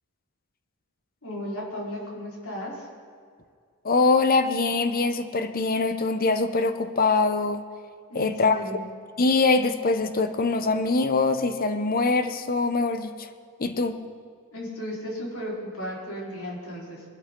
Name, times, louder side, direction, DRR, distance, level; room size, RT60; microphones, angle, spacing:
voice 1, 1.2-2.9 8.1-8.8 14.5-17.0, equal, 70° left, -4 dB, 4.4 m, -35 dB
voice 2, 3.8-7.6 8.1-8.6 9.2-13.3 13.6-14.0, left 3 dB, 40° left, 10 dB, 0.8 m, -23 dB
21.5 x 12.5 x 3.8 m, 2.2 s
head